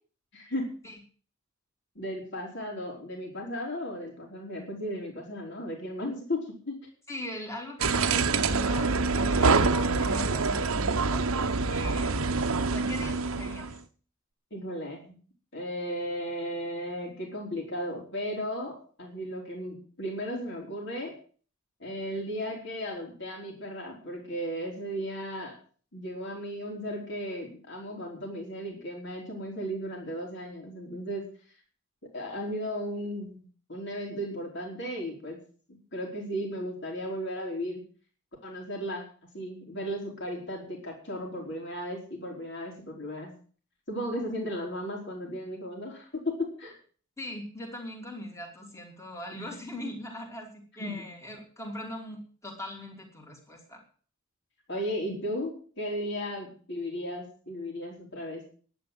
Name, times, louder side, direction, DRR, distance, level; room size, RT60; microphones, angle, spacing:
voice 1, 0.3-0.7 2.0-6.9 14.5-15.2 15.5-21.1 21.8-25.6 25.9-31.2 32.1-33.4 33.7-35.4 35.7-37.8 38.4-39.1 39.3-43.3 43.9-46.7 49.3-49.5 50.8-51.0 54.7-58.4, equal, 50° left, 0 dB, 3.7 m, -35 dB
voice 2, 7.1-11.3 11.7-12.4 12.7-13.7 47.2-50.5 50.7-53.8, left 1 dB, 15° left, 0 dB, 2.8 m, -40 dB
sound 1, 7.8-13.8, right 4 dB, 75° right, 0.9 m, -26 dB
11.0 x 9.2 x 7.8 m, 0.42 s
head